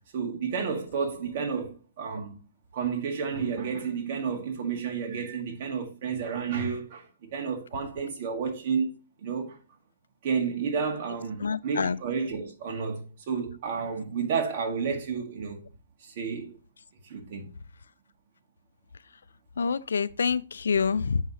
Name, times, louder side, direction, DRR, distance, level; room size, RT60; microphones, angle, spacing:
voice 1, 0.1-2.4 2.7-8.9 9.2-9.6 10.2-15.7 16.0-16.5 17.0-17.5, right 6 dB, 45° right, 1.8 m, -31 dB
voice 2, 11.4-12.0 19.6-21.2, left 5 dB, 90° left, 0.4 m, -26 dB
7.3 x 5.5 x 2.9 m
hypercardioid pair, 155°, 0 cm